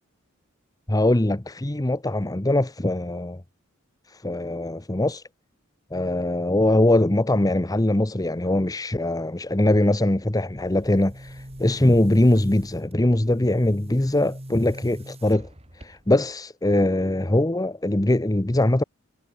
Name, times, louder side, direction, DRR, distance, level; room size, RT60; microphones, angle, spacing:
voice 1, 0.9-3.4 4.2-5.2 5.9-15.5 15.8-18.8, left 1 dB, 15° left, 0.9 m, -22 dB
Boom, 10.5-16.3, equal, 30° right, 5.2 m, -41 dB
head